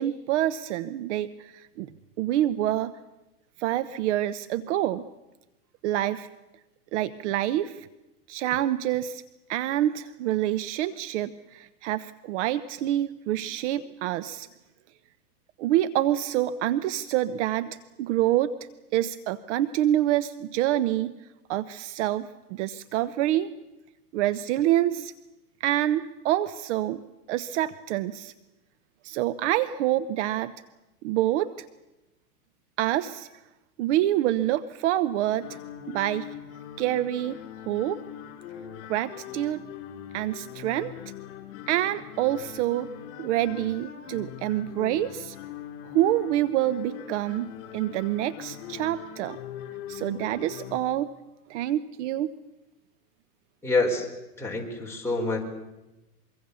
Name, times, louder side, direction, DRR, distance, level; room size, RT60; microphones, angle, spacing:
voice 1, 0.0-1.9 2.2-2.9 3.6-5.1 5.8-6.3 6.9-7.9 8.3-9.2 9.5-14.5 15.6-18.5 18.9-21.1 21.5-23.5 24.1-25.1 25.6-27.0 27.3-28.3 29.0-30.5 31.0-31.7 32.8-33.3 33.8-35.6 35.9-36.3 36.8-37.4 37.7-38.0 38.9-39.6 40.1-40.9 41.7-42.9 43.2-45.4 45.8-49.4 49.9-51.1 51.5-52.3, right 13 dB, 50° right, 15 dB, 0.9 m, -27 dB
sound 1, 35.4-50.8, left 11 dB, 50° left, 4.3 m, -41 dB
voice 2, 53.6-54.1 54.4-55.4, left 2 dB, 5° left, -1 dB, 4.6 m, -26 dB
24.5 x 23.5 x 7.0 m, 1.0 s
hypercardioid pair, 125°, 46 cm